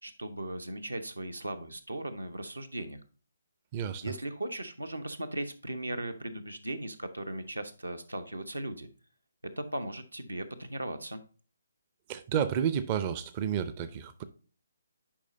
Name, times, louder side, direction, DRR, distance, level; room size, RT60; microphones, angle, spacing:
voice 1, 0.0-3.0 4.0-8.9 9.6-11.2, right 1 dB, 80° right, 1.0 m, -37 dB
voice 2, 3.7-4.1 12.1-14.2, right 8 dB, 30° right, 0.5 m, -31 dB
10.0 x 4.9 x 2.7 m
figure-of-eight pair, 140°, 0 cm